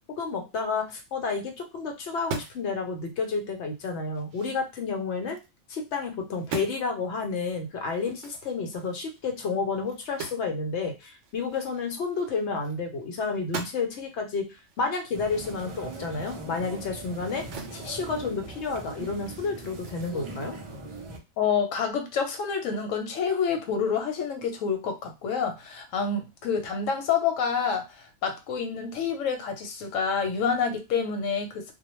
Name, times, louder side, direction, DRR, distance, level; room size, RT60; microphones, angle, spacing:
voice 1, 0.2-5.4 5.7-14.4 14.8-17.4 17.7-20.6, left 4 dB, 65° left, 4 dB, 0.9 m, -30 dB
sound 1, 2.1-2.7 3.2-3.3 3.8-5.5 5.9-6.1 6.4-6.8 7.9-10.5 10.8-10.9 11.2-13.0 13.3-14.0 14.5-17.8 18.1-20.1, right 4 dB, 75° right, 0.9 m, -42 dB
sound 2, 15.1-21.2, right 2 dB, 55° right, 0.3 m, -40 dB
voice 2, 21.4-31.7, left 6 dB, 90° left, 5 dB, 1.0 m, -28 dB
2.3 x 2.1 x 3.0 m, 0.25 s
omnidirectional pair, 1.3 m